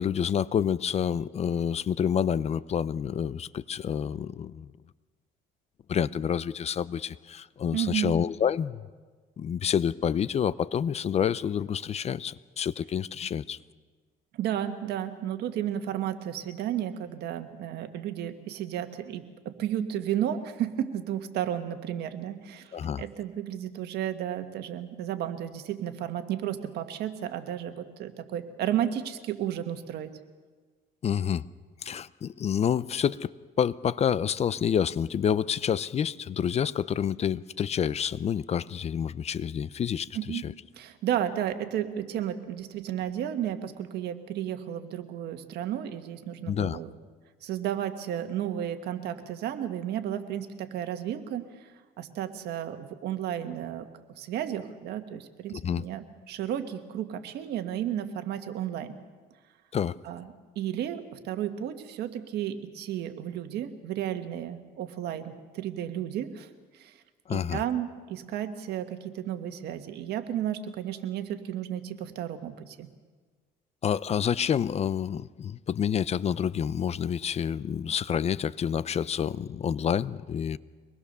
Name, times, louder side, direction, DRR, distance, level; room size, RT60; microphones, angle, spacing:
voice 1, 0.0-4.7 5.9-8.9 9.4-13.6 22.7-23.0 31.0-31.4 31.8-33.3 33.6-40.5 46.5-46.8 55.5-55.8 59.7-60.0 67.3-67.6 73.8-80.6, left 8 dB, 40° left, 18 dB, 0.6 m, -28 dB
voice 2, 7.7-8.2 14.3-30.1 40.1-40.4 40.7-46.9 47.4-51.7 52.0-53.9 54.2-59.0 60.0-67.0 67.3-72.9, right 10 dB, 75° right, 8 dB, 1.7 m, -33 dB
24.5 x 20.0 x 6.8 m, 1.4 s
cardioid pair, 110°, 17 cm